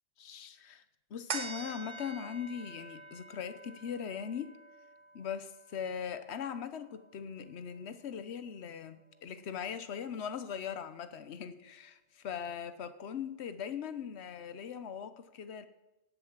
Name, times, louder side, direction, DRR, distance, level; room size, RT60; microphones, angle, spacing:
voice 1, 0.2-0.8 1.1-4.6 5.1-15.7, left 7 dB, 65° left, 12 dB, 1.2 m, -40 dB
sound 1, 1.3-8.1 8.5-8.6, right 4 dB, 80° right, 1.6 m, -46 dB
17.5 x 8.2 x 7.4 m, 1.0 s
omnidirectional pair, 1.2 m